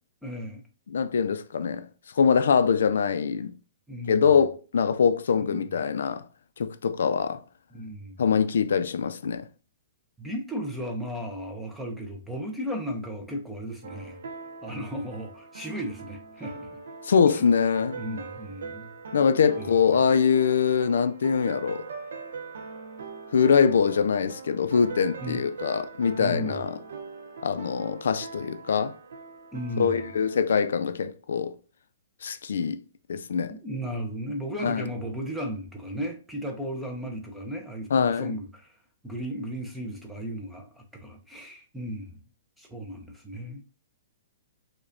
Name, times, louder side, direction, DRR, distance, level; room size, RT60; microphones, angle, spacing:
voice 1, 0.2-0.6 3.9-4.3 5.5-5.7 7.7-8.2 10.2-14.2 14.6-16.8 17.3-17.4 17.9-18.9 19.6-19.7 25.2-25.4 26.2-26.7 29.5-30.0 33.5-38.8 39.0-42.2 42.6-43.6, equal, ahead, 0.4 m, -35 dB
voice 2, 0.9-1.9 2.2-3.5 4.1-6.2 6.6-7.4 8.2-9.5 17.1-18.0 19.1-21.9 23.3-26.8 27.4-28.9 29.8-31.5 32.2-32.8 33.1-33.5 34.6-34.9 37.9-38.3, left 6 dB, 85° left, 0.3 m, -23 dB
sound 1, 13.8-30.4, right 4 dB, 75° right, 0.5 m, -41 dB
4.8 x 2.1 x 2.5 m
hypercardioid pair, 175°, 0 cm